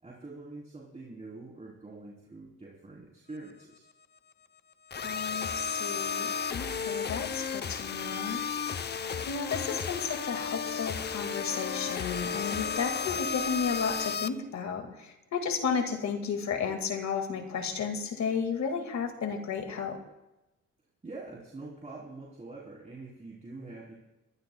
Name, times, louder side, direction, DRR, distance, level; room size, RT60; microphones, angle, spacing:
voice 1, 0.0-3.8 21.0-23.9, right 3 dB, 25° right, -5 dB, 3.3 m, -45 dB
sound 1, 4.9-14.3, left 6 dB, 35° left, 0.7 m, -33 dB
voice 2, 5.0-8.4 9.3-20.0, left 6 dB, 65° left, 5 dB, 1.9 m, -33 dB
23.0 x 16.0 x 2.2 m, 0.98 s
cardioid pair, 90°, 30 cm